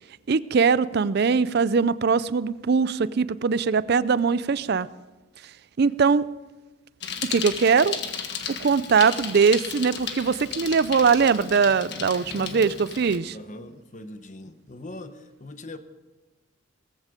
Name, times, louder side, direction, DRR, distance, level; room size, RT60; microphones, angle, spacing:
voice 1, 0.3-4.9 5.8-6.3 7.3-8.0 8.6-13.3, right 5 dB, 50° right, 18 dB, 0.4 m, -21 dB
Bicycle, 7.0-13.2, left 7 dB, 55° left, 1.6 m, -34 dB
voice 2, 12.3-12.7 13.3-15.8, left 1 dB, 35° left, 10 dB, 1.0 m, -41 dB
18.0 x 15.0 x 5.2 m, 1.2 s
head